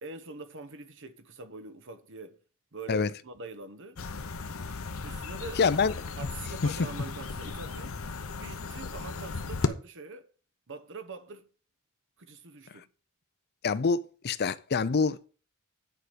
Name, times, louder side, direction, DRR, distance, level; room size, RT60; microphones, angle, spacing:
voice 1, 0.0-2.4 2.7-4.0 5.0-5.6 6.2-8.0 8.4-10.3 10.7-11.5 12.2-12.9, right 3 dB, 60° right, 1.2 m, -44 dB
sound 1, 4.0-9.7, left 4 dB, 70° left, 0.9 m, -36 dB
voice 2, 5.6-5.9 13.6-15.3, left 5 dB, 50° left, 0.5 m, -26 dB
9.3 x 4.9 x 7.8 m
head